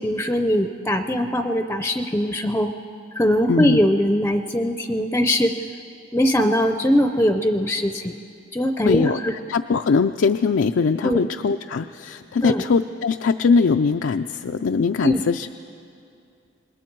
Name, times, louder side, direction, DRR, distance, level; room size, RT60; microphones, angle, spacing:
voice 1, 0.0-2.7 3.2-5.5 6.1-8.2 8.5-9.3 11.0-11.3 12.4-12.6 15.0-15.2, equal, 10° left, 7 dB, 0.5 m, -21 dB
voice 2, 8.8-15.5, left 5 dB, 90° left, 6 dB, 0.4 m, -21 dB
27.0 x 21.0 x 4.6 m, 2.5 s
head